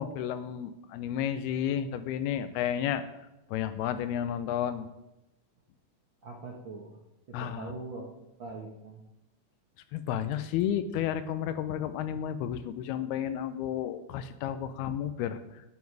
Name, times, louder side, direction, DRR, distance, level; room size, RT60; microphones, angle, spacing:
voice 1, 0.0-3.0 3.5-4.9 7.3-7.7 9.9-15.4, left 10 dB, 80° left, 11 dB, 2.6 m, -32 dB
voice 2, 6.2-7.0 7.3-8.1 8.4-9.0, right 3 dB, 80° right, -1 dB, 1.0 m, -42 dB
12.0 x 9.5 x 4.7 m, 0.93 s
omnidirectional pair, 4.6 m